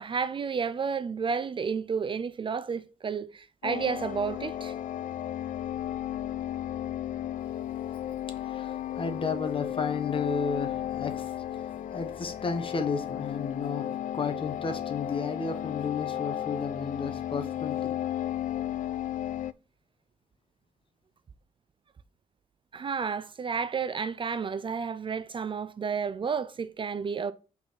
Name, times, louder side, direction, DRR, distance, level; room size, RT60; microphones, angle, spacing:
voice 1, 0.0-4.7 22.7-27.3, right 6 dB, 40° right, 0.4 m, -31 dB
sound 1, 3.6-19.5, left 11 dB, 70° left, 0.4 m, -34 dB
voice 2, 8.4-18.0, left 5 dB, 40° left, 1.2 m, -33 dB
5.6 x 4.0 x 5.8 m
cardioid pair, 105°, 14 cm